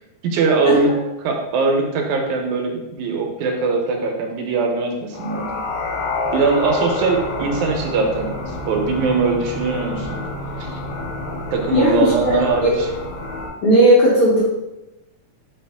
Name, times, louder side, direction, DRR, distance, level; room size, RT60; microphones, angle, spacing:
voice 1, 0.2-5.5 6.3-10.2 10.6-10.8 11.5-12.9, right 4 dB, 80° right, 2 dB, 2.0 m, -21 dB
sound 1, 5.1-13.5, left 2 dB, 80° left, 2.1 m, -28 dB
voice 2, 11.7-12.1 12.3-12.7 13.6-14.4, equal, 65° left, -6 dB, 1.6 m, -15 dB
4.2 x 3.3 x 3.4 m, 0.96 s
omnidirectional pair, 3.4 m